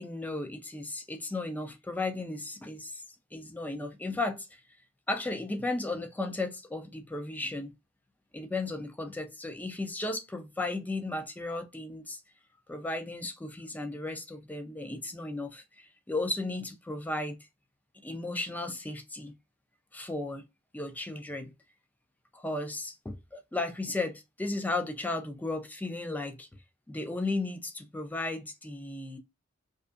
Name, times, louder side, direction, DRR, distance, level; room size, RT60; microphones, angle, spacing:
voice 1, 0.0-3.0 3.3-4.6 5.1-7.7 8.3-12.2 12.7-17.4 18.0-19.3 19.9-20.4 20.7-21.5 22.3-26.5 26.9-29.2, left 2 dB, 10° left, 0.3 m, -35 dB
2.5 x 2.3 x 2.4 m
head